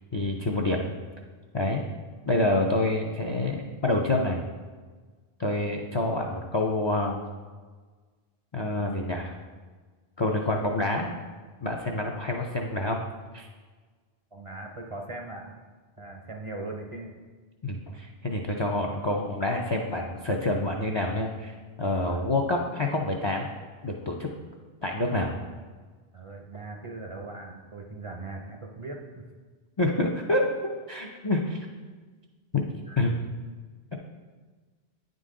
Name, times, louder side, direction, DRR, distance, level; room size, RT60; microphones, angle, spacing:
voice 1, 0.1-0.9 1.5-1.9 2.3-4.4 5.4-7.2 8.5-9.3 10.2-11.1 11.6-13.0 13.3-13.5 17.6-23.5 23.8-24.3 24.8-25.3 29.8-30.5 30.9-31.7 32.5-32.6 33.0-33.1, left 2 dB, 45° left, 1 dB, 0.3 m, -27 dB
voice 2, 14.3-15.6 16.0-17.1 22.0-22.2 26.1-29.3 32.9-33.0, right 2 dB, 40° right, 1 dB, 0.5 m, -39 dB
9.2 x 3.9 x 3.7 m, 1.4 s
omnidirectional pair, 1.1 m